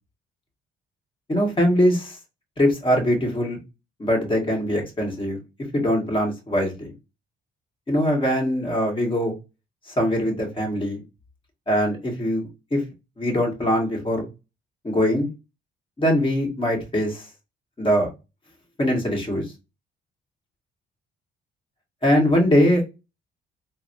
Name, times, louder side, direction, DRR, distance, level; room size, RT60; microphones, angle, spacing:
voice 1, 1.3-2.2 2.6-3.6 4.0-5.4 5.7-6.9 7.9-9.3 10.0-11.0 11.7-12.8 13.2-14.3 14.8-15.3 16.0-17.2 17.8-18.1 18.8-19.4 22.0-22.9, equal, 25° left, 0 dB, 1.6 m, -22 dB
3.9 x 2.3 x 2.6 m, 0.26 s
cardioid pair, 90°, 20 cm